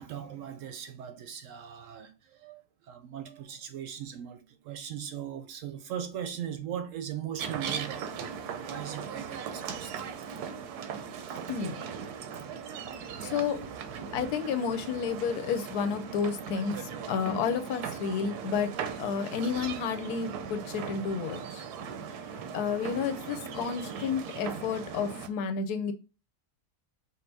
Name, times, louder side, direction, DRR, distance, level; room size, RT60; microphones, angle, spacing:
voice 1, 0.0-8.1 8.5-10.1 11.4-11.5, right 9 dB, 70° right, 0.8 m, -39 dB
sound 1, 7.4-25.3, right 7 dB, 90° right, 1.1 m, -39 dB
voice 2, 11.5-11.8 13.2-13.6 14.1-18.7 19.0-21.7 22.5-25.9, left 6 dB, 90° left, 1.2 m, -31 dB
5.4 x 2.0 x 3.9 m
omnidirectional pair, 1.6 m